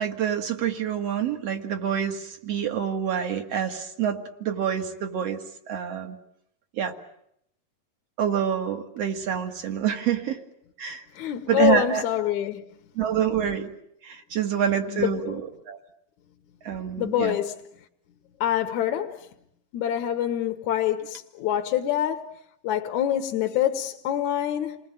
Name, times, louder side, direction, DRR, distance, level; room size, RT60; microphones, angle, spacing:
voice 1, 0.0-5.4 5.7-6.2 6.8-6.9 8.2-10.4 10.8-11.0 11.5-12.0 13.0-13.7 14.0-15.4 15.7-15.8 16.6-17.4, right 9 dB, 50° right, 2.5 m, -27 dB
voice 2, 11.1-12.7 14.9-15.4 17.0-17.6 18.4-19.3 19.7-22.4 22.6-24.8, left 11 dB, 65° left, 2.3 m, -26 dB
29.0 x 20.5 x 9.0 m
omnidirectional pair, 3.9 m